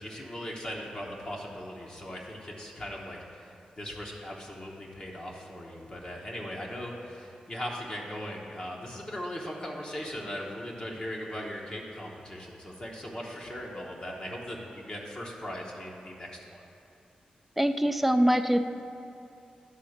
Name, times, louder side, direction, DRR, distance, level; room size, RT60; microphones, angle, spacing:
voice 1, 0.0-16.6, equal, 35° left, -2 dB, 1.0 m, -39 dB
voice 2, 17.6-18.6, equal, 5° right, 7 dB, 0.4 m, -23 dB
11.0 x 3.8 x 6.5 m, 2.6 s
wide cardioid pair, 100°, 3 cm